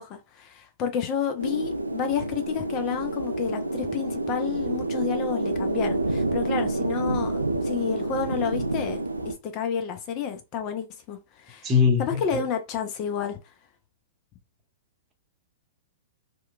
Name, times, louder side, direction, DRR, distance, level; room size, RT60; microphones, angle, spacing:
voice 1, 0.0-11.7 12.0-13.4, left 7 dB, 35° left, 0.4 m, -30 dB
sound 1, 1.4-9.3, right 2 dB, 85° right, 0.3 m, -28 dB
voice 2, 11.6-12.4, left 6 dB, 20° right, 0.8 m, -22 dB
2.8 x 2.1 x 2.3 m
figure-of-eight pair, 105°, 0 cm